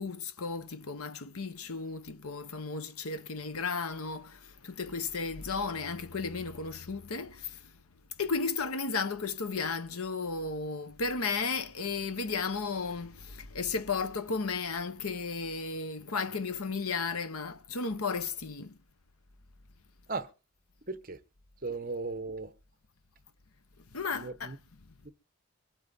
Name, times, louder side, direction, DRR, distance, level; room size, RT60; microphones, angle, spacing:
voice 1, 0.0-7.7 8.2-18.8 23.9-24.5, left 4 dB, 90° left, 1.1 m, -34 dB
voice 2, 20.9-21.2 21.6-22.5 24.1-24.6 25.0-25.1, right 3 dB, 40° right, 1.0 m, -36 dB
24.0 x 8.2 x 4.0 m
head